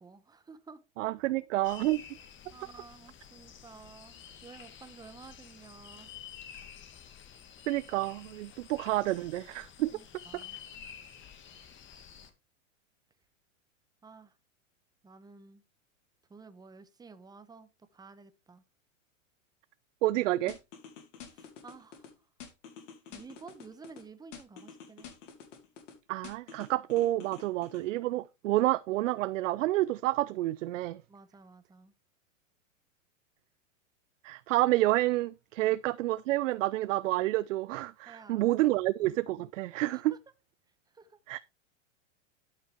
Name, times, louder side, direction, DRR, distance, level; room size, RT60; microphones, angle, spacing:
voice 1, 0.0-0.8 2.5-6.1 9.9-10.9 14.0-14.3 15.0-15.6 16.3-18.6 21.3-22.1 23.1-25.1 31.1-31.9 35.6-35.8 38.1-38.8 40.9-41.2, right 4 dB, 10° right, 0.9 m, -52 dB
voice 2, 1.0-2.0 7.7-9.9 10.3-10.4 20.0-20.6 26.1-31.0 34.2-40.1 41.3-41.4, right 17 dB, 70° right, 0.5 m, -29 dB
sound 1, 1.6-12.3, left 8 dB, 30° left, 1.6 m, -50 dB
sound 2, 20.5-22.1 22.4-24.0 24.3-25.9 26.2-27.8, left 7 dB, 65° left, 2.7 m, -48 dB
12.0 x 5.7 x 3.5 m
hypercardioid pair, 110°, 40 cm